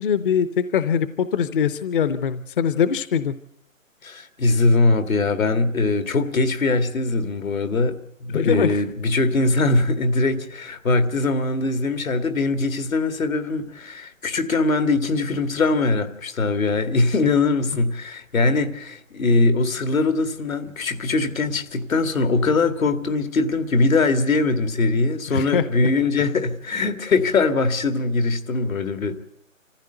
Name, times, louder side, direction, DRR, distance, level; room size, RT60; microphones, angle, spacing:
voice 1, 0.0-3.3 8.3-8.8 25.3-25.6 26.2-26.3, left 7 dB, 40° left, 0.7 m, -22 dB
voice 2, 4.0-29.2, left 3 dB, 80° left, 2.2 m, -21 dB
25.5 x 15.0 x 7.9 m
hypercardioid pair, 155°, 40 cm